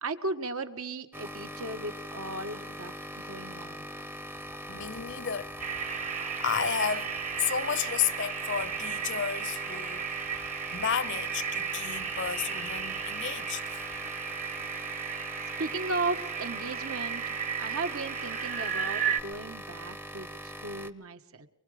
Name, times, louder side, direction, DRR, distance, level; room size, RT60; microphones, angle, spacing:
voice 1, 0.0-3.8 15.6-21.5, right 3 dB, 75° right, 1.6 m, -36 dB
sound 1, 1.1-20.9, equal, 10° right, 0.7 m, -42 dB
voice 2, 4.7-5.6 5.9-10.2 10.7-13.6, left 7 dB, 55° left, 0.7 m, -32 dB
sound 2, 5.6-19.2, right 7 dB, 35° right, 1.0 m, -34 dB
24.0 x 24.0 x 5.0 m
head